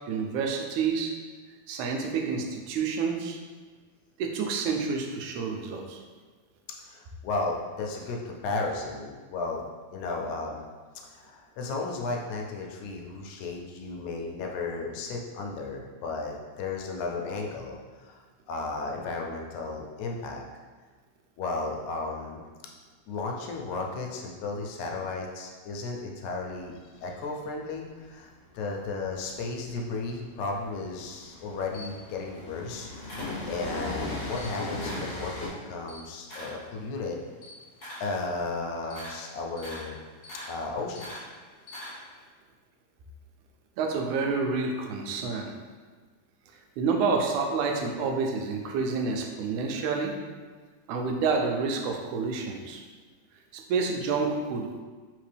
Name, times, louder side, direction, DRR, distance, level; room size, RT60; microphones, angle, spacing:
voice 1, 0.1-1.1 1.7-3.4 4.2-6.0 43.8-45.5 46.8-50.2 50.9-52.8 53.5-54.8, right 4 dB, 85° right, 3 dB, 2.0 m, -28 dB
voice 2, 6.8-9.6 9.9-10.7 11.1-18.2 18.5-20.5 21.4-22.4 23.1-37.2 38.0-40.0 40.5-41.2, left 3 dB, 80° left, 1 dB, 1.9 m, -34 dB
Train, 26.4-35.5, left 2 dB, 55° left, 1.3 m, -38 dB
Camera, 31.4-33.9 34.2-35.2 35.5-42.2, left 1 dB, 35° left, 1.4 m, -44 dB
4.2 x 3.6 x 3.3 m, 1.4 s
omnidirectional pair, 3.4 m